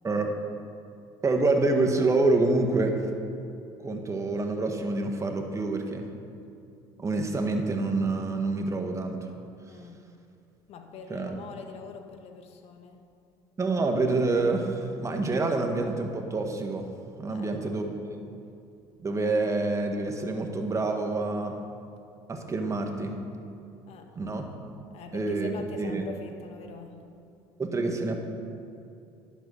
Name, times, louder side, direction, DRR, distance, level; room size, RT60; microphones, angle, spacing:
voice 1, 1.2-3.1 3.8-6.1 7.0-9.3 11.1-11.3 13.6-16.9 17.2-18.2 19.0-21.6 22.3-23.1 24.1-24.4 25.1-26.0 27.6-28.2, right 3 dB, 25° right, 4 dB, 1.7 m, -27 dB
voice 2, 9.7-10.0 10.7-13.1 17.3-17.8 23.9-24.1 24.9-27.0, left 6 dB, 60° left, 5 dB, 1.5 m, -44 dB
10.5 x 8.2 x 6.5 m, 2.7 s
supercardioid pair, 90°, 12 cm